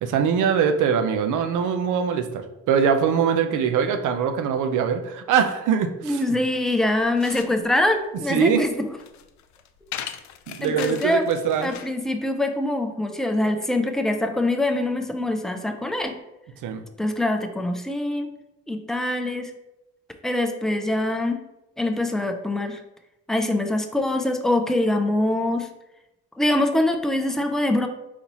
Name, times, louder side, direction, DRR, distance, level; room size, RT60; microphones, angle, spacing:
voice 1, 0.0-6.2 8.3-8.6 10.5-11.7 16.6-16.8, right 7 dB, 80° right, 7 dB, 0.6 m, -22 dB
voice 2, 6.0-8.9 10.6-11.3 11.6-16.2 17.0-18.3 18.7-19.5 20.2-21.4 21.8-22.8 23.3-25.7 26.4-27.9, left 1 dB, ahead, 5 dB, 0.5 m, -24 dB
sound 1, 6.8-12.0, left 10 dB, 65° left, 0.4 m, -39 dB
4.1 x 4.0 x 3.0 m, 0.94 s
cardioid pair, 90°, 30 cm